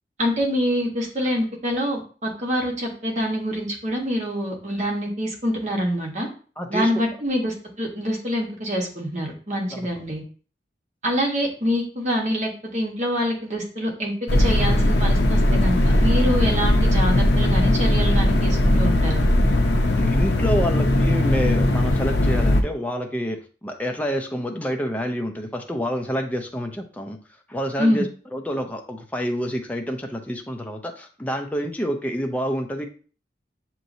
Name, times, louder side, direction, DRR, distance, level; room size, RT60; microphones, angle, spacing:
voice 1, 0.2-6.3 6.7-10.2 11.0-19.3 27.8-28.0, equal, 40° right, 0 dB, 1.2 m, -25 dB
voice 2, 6.6-6.9 9.7-9.8 20.0-27.2 27.5-32.9, equal, 10° left, 3 dB, 0.5 m, -28 dB
sound 1, 14.3-22.6, left 1 dB, 80° left, 0.6 m, -19 dB
6.6 x 3.0 x 2.7 m, 0.39 s
head